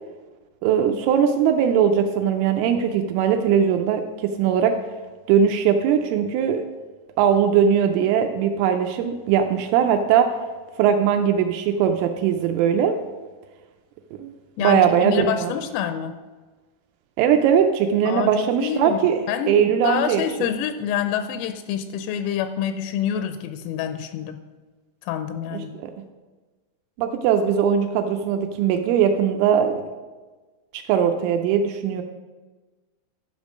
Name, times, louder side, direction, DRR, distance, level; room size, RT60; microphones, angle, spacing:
voice 1, 0.6-4.8 5.3-6.7 7.2-10.3 10.8-13.0 14.2-14.3 14.6-15.5 17.2-20.2 25.7-25.9 27.0-29.8 30.7-32.0, right 8 dB, 85° right, 5 dB, 3.0 m, -20 dB
voice 2, 14.6-16.2 18.1-19.0 19.3-24.4 25.0-25.7, left 9 dB, 85° left, 9 dB, 3.2 m, -27 dB
12.0 x 5.4 x 5.1 m, 1.3 s
omnidirectional pair, 5.9 m